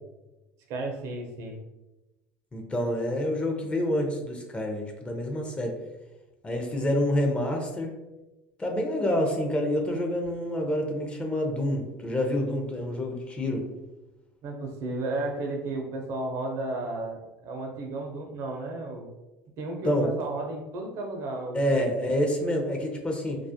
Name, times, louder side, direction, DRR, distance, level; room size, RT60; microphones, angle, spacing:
voice 1, 0.7-1.6 14.4-19.1 19.6-21.8, right 2 dB, 60° right, 2 dB, 0.5 m, -33 dB
voice 2, 2.5-5.7 6.4-7.9 8.6-13.6 19.8-20.1 21.5-23.4, left 1 dB, 20° left, 2 dB, 0.5 m, -27 dB
2.3 x 2.1 x 2.7 m, 1.0 s
hypercardioid pair, 85°, 6 cm